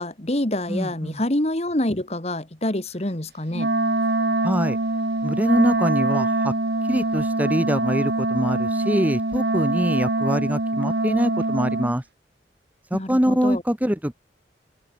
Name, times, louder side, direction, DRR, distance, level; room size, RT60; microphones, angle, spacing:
voice 1, 0.0-3.7 12.9-13.6, left 1 dB, 35° left, 2.0 m, -26 dB
voice 2, 0.7-1.2 4.4-4.8 5.2-6.5 6.9-12.0 12.9-14.1, equal, 10° right, 1.3 m, -23 dB
Wind instrument woodwind instrument, 3.5-12.0, right 2 dB, 65° right, 1.7 m, -24 dB
head